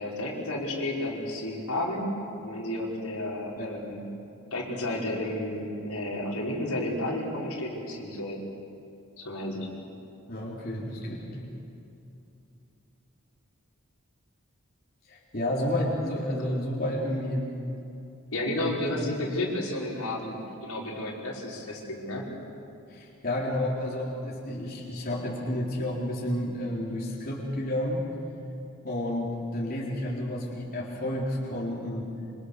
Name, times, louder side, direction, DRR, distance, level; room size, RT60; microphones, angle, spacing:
voice 1, 0.0-2.2 2.4-4.0 4.5-8.4 9.2-9.7 18.3-22.2, left 1 dB, 85° left, -3 dB, 5.0 m, -32 dB
voice 2, 10.3-11.4 15.1-17.5 18.6-18.7 19.0-19.2 22.9-28.0 28.8-32.1, left 1 dB, 40° left, -4 dB, 3.9 m, -31 dB
26.0 x 26.0 x 6.7 m, 2.7 s
head